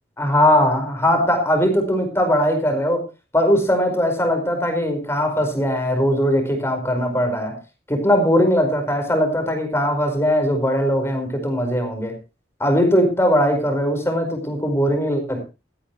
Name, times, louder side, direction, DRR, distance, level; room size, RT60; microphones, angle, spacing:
voice 1, 0.2-3.0 3.3-7.6 7.9-12.2 12.6-15.4, equal, 15° left, 5 dB, 4.9 m, -20 dB
17.0 x 14.5 x 3.1 m, 0.29 s
head